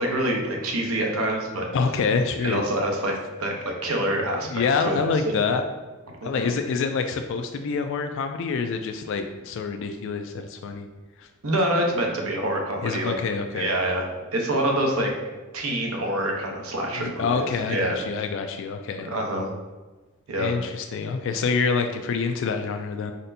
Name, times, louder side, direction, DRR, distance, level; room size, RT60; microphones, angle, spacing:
voice 1, 0.0-1.7 2.4-3.1 3.4-5.4 6.2-6.6 11.4-13.2 13.5-15.1 15.5-18.0 19.0-19.5 20.3-20.5, right 1 dB, 80° right, 1 dB, 0.8 m, -26 dB
voice 2, 1.7-2.6 4.4-5.6 6.2-10.9 11.2-11.3 12.8-13.7 16.9-19.1 20.4-23.1, left 5 dB, 60° left, 6 dB, 0.3 m, -26 dB
4.3 x 4.2 x 2.7 m, 1.3 s
head